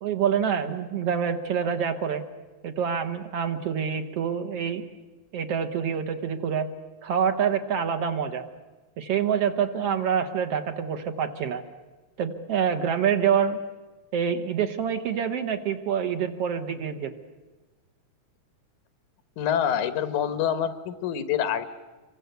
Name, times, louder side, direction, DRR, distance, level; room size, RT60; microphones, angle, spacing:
voice 1, 0.0-2.2 2.6-4.8 5.3-6.7 7.0-8.5 9.0-11.6 12.2-13.6 14.1-17.1, right 7 dB, 60° right, 7 dB, 2.1 m, -26 dB
voice 2, 19.4-21.7, left 9 dB, 85° left, 11 dB, 2.7 m, -26 dB
27.0 x 23.5 x 8.1 m, 1.2 s
omnidirectional pair, 3.4 m